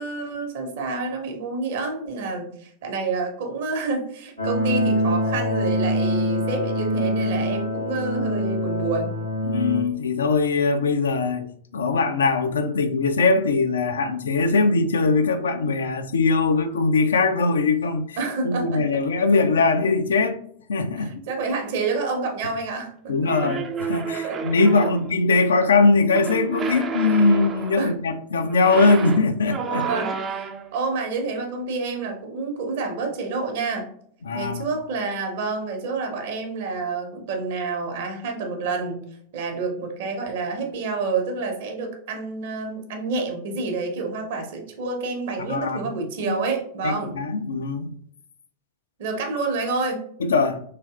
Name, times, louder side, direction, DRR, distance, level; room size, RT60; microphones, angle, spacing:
voice 1, 0.0-9.2 18.2-18.8 21.0-23.5 24.2-24.4 24.8-24.9 27.8-27.9 29.8-33.9 34.3-47.2 49.0-50.0, right 3 dB, 55° right, 0.7 m, -28 dB
sound 1, 4.4-9.8, equal, 90° left, 1.3 m, -24 dB
voice 2, 9.4-18.2 18.4-20.4 20.7-21.1 23.1-29.9 34.2-34.7 45.4-45.8 46.2-46.3 46.8-47.9 50.2-50.6, left 3 dB, 70° left, 0.3 m, -21 dB
sound 2, 23.3-25.1 26.1-27.9 28.5-30.8, right 6 dB, 25° right, 0.3 m, -30 dB
3.3 x 2.7 x 2.3 m
figure-of-eight pair, 90°, 0 cm